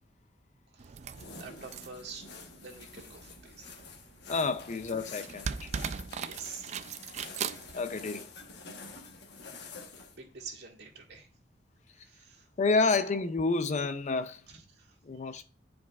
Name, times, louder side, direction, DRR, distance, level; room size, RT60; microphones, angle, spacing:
voice 1, 0.7-1.1 1.4-2.3 2.5-3.8 6.3-6.9 8.7-8.8 10.1-11.3 12.0-12.5 14.5-15.0 15.3-15.4, right 5 dB, 60° right, 1.9 m, -47 dB
sound 1, 0.8-8.6 9.4-9.5, right 6 dB, 40° right, 0.3 m, -41 dB
sound 2, 1.1-10.2, left 4 dB, 65° left, 1.2 m, -48 dB
voice 2, 4.3-5.7 7.7-8.3 12.6-14.4 15.1-15.4, left 3 dB, 40° left, 0.5 m, -29 dB
10.5 x 4.8 x 2.3 m
head